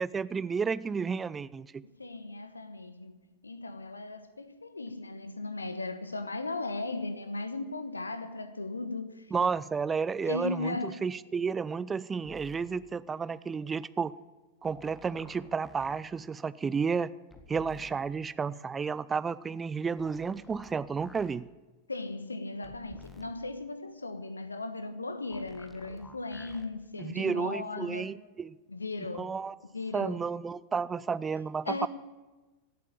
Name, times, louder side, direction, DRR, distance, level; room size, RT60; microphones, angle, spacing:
voice 1, 0.0-1.8 9.3-14.1 14.6-17.1 17.5-21.5 27.0-28.6 29.1-29.6 29.9-31.9, right 5 dB, 15° right, 0.5 m, -32 dB
voice 2, 2.0-9.3 10.2-11.0 21.9-28.1 28.7-29.4 29.7-30.2 31.6-31.9, left 3 dB, 80° left, 1.2 m, -37 dB
sound 1, 12.3-12.7 14.6-16.0 17.3-18.0 20.0-21.3 22.6-23.3 25.3-26.7 28.0-28.1, left 2 dB, 10° left, 1.7 m, -52 dB
16.5 x 8.3 x 8.9 m
figure-of-eight pair, 90°, 0 cm